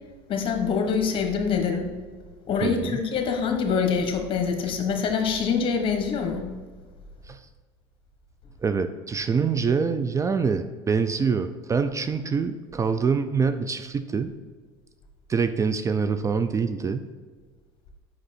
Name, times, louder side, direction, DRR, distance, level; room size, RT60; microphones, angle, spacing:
voice 1, 0.3-1.9 2.5-6.4, left 6 dB, 45° left, 4 dB, 1.2 m, -25 dB
voice 2, 2.6-3.0 7.3-7.4 8.6-14.3 15.3-17.1, right 5 dB, 25° right, 10 dB, 0.4 m, -25 dB
5.3 x 5.3 x 4.2 m, 1.5 s
supercardioid pair, 85°, 12 cm